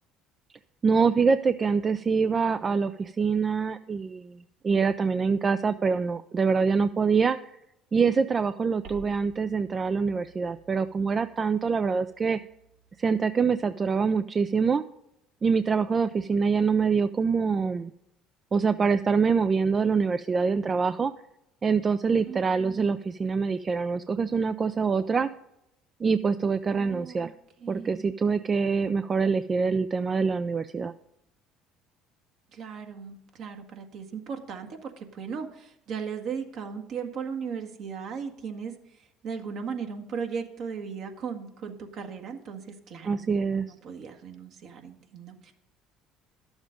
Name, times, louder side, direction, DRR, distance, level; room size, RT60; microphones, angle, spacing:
voice 1, 0.8-7.5 7.9-12.4 13.0-14.8 15.4-17.9 18.5-21.1 21.6-25.3 26.0-27.3 27.7-30.9 43.1-43.7, right 5 dB, 35° right, 12 dB, 0.4 m, -25 dB
sound 1, 8.8-13.7, right 4 dB, 80° right, 3.0 m, -53 dB
voice 2, 22.3-22.9 26.7-27.3 27.6-28.1 32.5-45.5, right 6 dB, 60° right, 5 dB, 1.6 m, -37 dB
11.5 x 7.2 x 5.2 m, 0.83 s
supercardioid pair, 75°, 0 cm